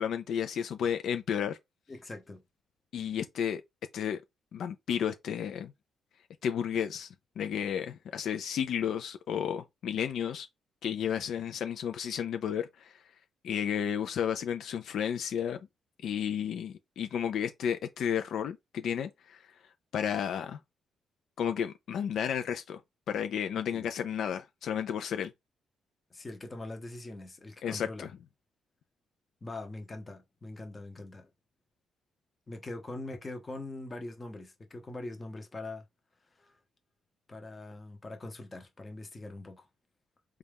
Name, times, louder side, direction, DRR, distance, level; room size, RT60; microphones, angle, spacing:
voice 1, 0.0-1.6 2.9-3.6 3.9-4.2 4.5-5.7 6.4-7.1 7.4-10.5 10.8-12.9 13.4-15.6 16.0-19.4 19.9-20.6 21.4-22.8 23.1-25.3 27.6-28.1, left 8 dB, 70° left, 0.4 m, -32 dB
voice 2, 1.9-2.4 23.7-23.9 26.1-28.1 29.4-31.3 32.5-35.8 36.4-36.6 37.3-39.7, left 2 dB, 20° left, 0.8 m, -42 dB
4.1 x 2.3 x 3.4 m
cardioid pair, 130°, 0 cm